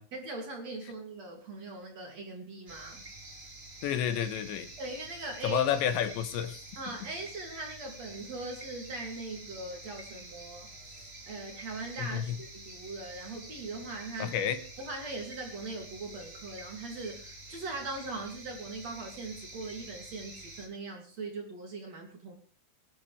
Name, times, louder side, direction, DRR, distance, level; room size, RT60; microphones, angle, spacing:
voice 1, 0.1-3.0 4.8-5.6 6.8-14.4 14.8-22.4, right 3 dB, 40° right, 3 dB, 3.2 m, -40 dB
sound 1, 2.7-20.7, right 2 dB, 15° right, 2.8 m, -48 dB
voice 2, 3.8-4.7 5.4-6.6 12.0-12.4 14.2-14.6, left 9 dB, 75° left, 10 dB, 3.3 m, -30 dB
25.0 x 11.5 x 3.4 m, 0.38 s
omnidirectional pair, 5.6 m